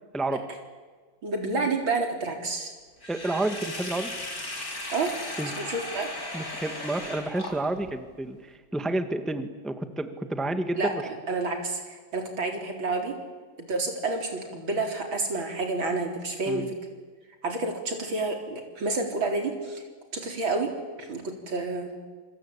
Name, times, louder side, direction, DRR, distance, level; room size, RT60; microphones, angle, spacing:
voice 1, 1.2-2.7 4.9-5.1 5.6-6.1 10.8-13.1 13.6-16.8 17.4-19.8 20.1-21.9, right 3 dB, 80° right, 3 dB, 4.6 m, -29 dB
Sink (filling or washing), 3.0-7.9, left 1 dB, 45° left, 4.8 m, -36 dB
voice 2, 3.1-4.1 5.4-5.5 6.3-10.9 16.5-16.7, right 2 dB, ahead, 8 dB, 1.5 m, -30 dB
27.0 x 25.5 x 8.7 m, 1.4 s
omnidirectional pair, 2.1 m